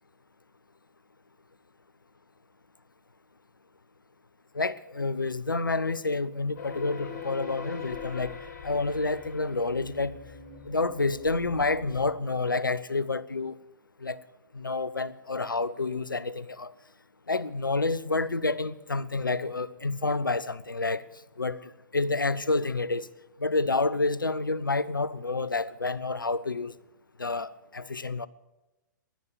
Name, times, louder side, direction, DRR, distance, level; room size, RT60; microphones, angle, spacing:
voice 1, 4.5-8.3 8.6-10.2 10.7-13.6 14.0-14.2 14.5-16.7 17.3-21.0 21.4-23.1 23.4-26.7 27.2-28.3, left 3 dB, 85° left, 0.7 m, -29 dB
sound 1, 6.6-12.1, left 5 dB, 50° left, 5.1 m, -42 dB
16.0 x 11.5 x 6.7 m
figure-of-eight pair, 110°, 11 cm